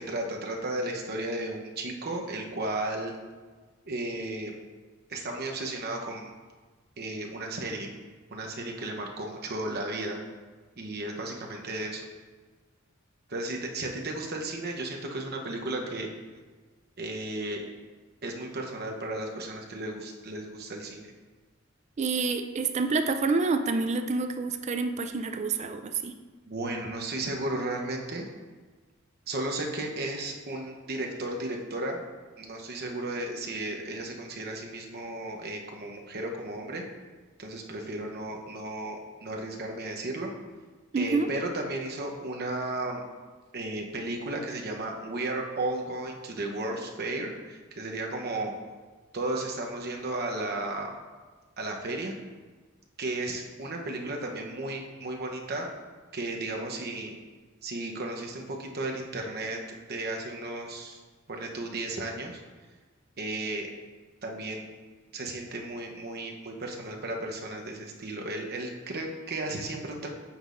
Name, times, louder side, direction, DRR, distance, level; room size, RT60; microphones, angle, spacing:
voice 1, 0.0-3.1 3.9-4.5 5.1-6.3 7.0-7.9 8.3-10.2 10.8-12.0 13.3-16.1 17.0-17.6 18.2-21.1 26.4-28.3 29.3-32.0 32.4-36.8 37.4-40.3 41.0-43.0 43.5-48.5 49.1-50.9 51.6-52.1 53.0-55.7 56.1-57.2 57.6-59.6 59.9-61.0 61.3-62.4 63.2-63.7 64.2-64.7 65.1-70.1, right 2 dB, 50° right, 1 dB, 0.9 m, -34 dB
voice 2, 22.0-26.1 40.9-41.3, right 4 dB, 35° right, 8 dB, 0.3 m, -28 dB
8.6 x 5.8 x 2.5 m, 1.4 s
head